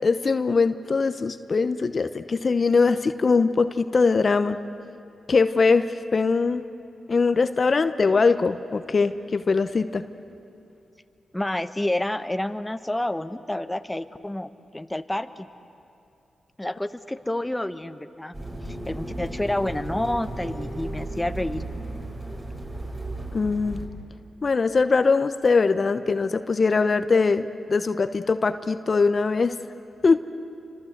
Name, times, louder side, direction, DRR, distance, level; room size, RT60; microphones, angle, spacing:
voice 1, 0.0-4.6 5.3-5.8 6.1-6.6 7.1-10.0 23.3-23.8 24.4-29.5 30.0-30.2, left 4 dB, 50° left, 10 dB, 0.9 m, -21 dB
voice 2, 11.3-15.5 16.6-18.3 18.7-21.6, left 1 dB, 15° left, 10 dB, 1.2 m, -29 dB
sound 1, 18.3-23.9, right 1 dB, 25° right, 6.9 m, -34 dB
28.5 x 25.5 x 8.1 m, 2.7 s
supercardioid pair, 50°, 0 cm